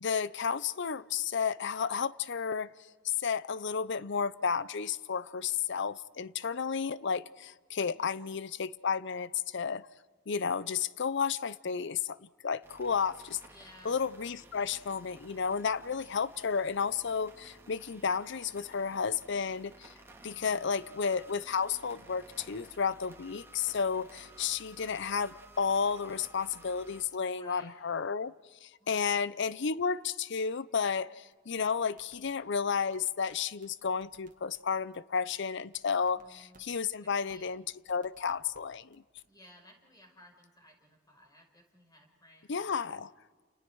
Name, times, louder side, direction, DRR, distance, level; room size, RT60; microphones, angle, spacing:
voice 1, 0.0-2.7 3.0-9.9 10.3-13.4 13.8-19.9 20.2-28.3 28.6-39.0 42.5-43.1, left 6 dB, 65° left, 0.7 m, -32 dB
voice 2, 7.8-8.3 13.4-14.0 20.2-20.8 27.3-27.8 28.8-29.2 36.0-37.5 39.2-42.5, left 1 dB, 20° left, 5.3 m, -58 dB
sound 1, 12.6-27.0, right 2 dB, 10° right, 2.7 m, -55 dB
sound 2, 31.3-32.6 32.9-33.0 33.3-33.4 33.6-34.6 34.9-35.0 35.3-35.4 35.7-36.6 36.9-37.0 37.3-37.4 37.7-38.6 38.9-39.2, right 4 dB, 40° right, 2.0 m, -62 dB
29.5 x 29.0 x 4.7 m
head